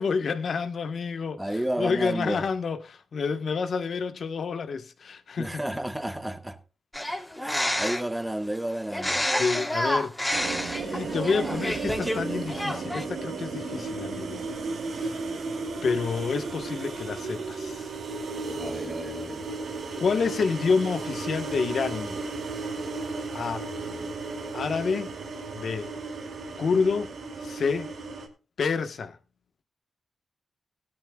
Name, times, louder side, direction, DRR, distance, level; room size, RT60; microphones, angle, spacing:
voice 1, 0.0-1.4 1.8-5.5 9.4-14.4 14.9-15.2 15.8-17.9 20.0-22.2 23.3-23.7 24.5-25.1 25.5-25.9 26.6-27.1 27.4-27.9 28.6-29.2, left 5 dB, 70° left, 1.2 m, -28 dB
voice 2, 1.4-2.5 5.4-6.6 7.4-9.2 18.6-19.4 23.7-24.1, right 1 dB, 10° right, 1.6 m, -32 dB
sound 1, 6.9-8.2 8.9-12.2 12.5-13.0, left 1 dB, 5° left, 3.0 m, -29 dB
sound 2, 10.3-28.3, right 3 dB, 80° right, 2.5 m, -34 dB
17.5 x 12.5 x 2.3 m
cardioid pair, 55°, 0 cm